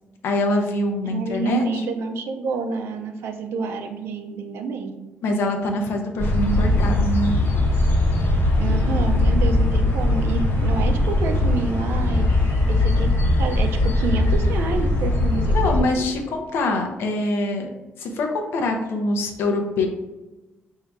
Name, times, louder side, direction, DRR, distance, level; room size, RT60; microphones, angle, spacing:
voice 1, 0.2-1.9 5.2-7.3 15.5-17.7 18.0-19.9, left 2 dB, 80° left, 3 dB, 0.6 m, -24 dB
voice 2, 1.0-4.9 8.6-13.1 13.4-16.1, right 4 dB, 90° right, 6 dB, 0.5 m, -29 dB
sound 1, 6.2-15.8, left 1 dB, 60° left, 0.9 m, -20 dB
4.5 x 2.7 x 3.5 m, 1.1 s
cardioid pair, 100°, 4 cm